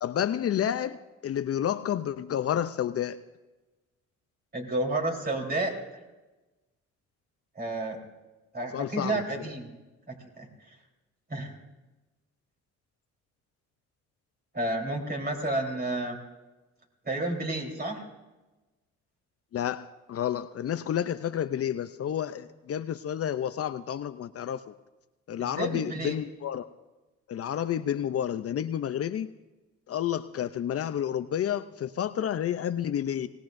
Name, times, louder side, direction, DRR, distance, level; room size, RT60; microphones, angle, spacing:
voice 1, 0.0-3.2 8.7-9.6 19.5-24.7 25.3-26.7 27.3-29.3 29.9-33.3, left 10 dB, 50° left, 11 dB, 0.6 m, -30 dB
voice 2, 4.5-6.0 7.6-8.0 8.5-9.7 10.1-10.8 11.3-11.5 14.5-16.2 17.0-18.0 25.4-26.2, right 2 dB, 30° right, 0 dB, 3.9 m, -31 dB
24.0 x 18.5 x 2.6 m, 1.1 s
cardioid pair, 90°, 30 cm